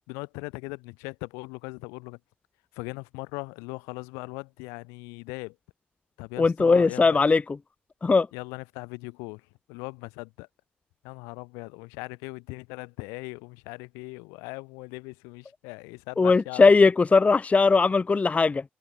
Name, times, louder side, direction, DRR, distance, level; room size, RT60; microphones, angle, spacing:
voice 1, 0.1-2.2 2.8-5.5 6.2-7.2 8.3-9.4 9.7-10.5 11.0-16.7, left 29 dB, 85° left, 5.7 m, -39 dB
voice 2, 6.4-7.4 8.0-8.3 16.2-18.6, left 4 dB, 30° left, 0.5 m, -19 dB
hypercardioid pair, 55°, 5 cm